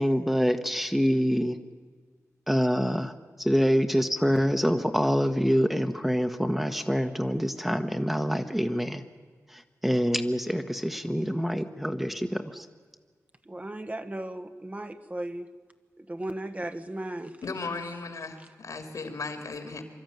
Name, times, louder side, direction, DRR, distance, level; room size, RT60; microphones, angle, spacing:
voice 1, 0.0-1.6 2.5-3.1 3.4-9.0 9.5-12.7, equal, 5° right, 6 dB, 1.1 m, -26 dB
voice 2, 13.4-15.6 16.0-17.4, right 1 dB, 25° right, 8 dB, 1.1 m, -36 dB
voice 3, 17.4-19.8, left 4 dB, 70° left, 6 dB, 2.7 m, -36 dB
24.5 x 12.5 x 9.2 m, 1.5 s
cardioid pair, 65°, 6 cm